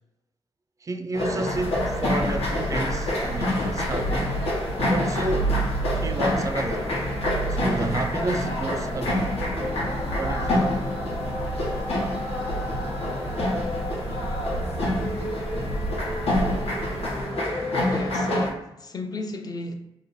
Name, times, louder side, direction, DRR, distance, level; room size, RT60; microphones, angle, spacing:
voice 1, 0.8-4.4 4.9-5.6 5.9-6.9 7.5-9.3 10.2-10.8, right 2 dB, 30° right, 0.3 m, -31 dB
sound 1, 1.1-18.5, left 1 dB, 80° left, 1.0 m, -27 dB
sound 2, 1.5-17.2, right 3 dB, 85° right, 0.6 m, -32 dB
voice 2, 17.8-19.8, left 2 dB, 40° left, 0.5 m, -34 dB
3.0 x 2.7 x 4.0 m
wide cardioid pair, 140°, 10 cm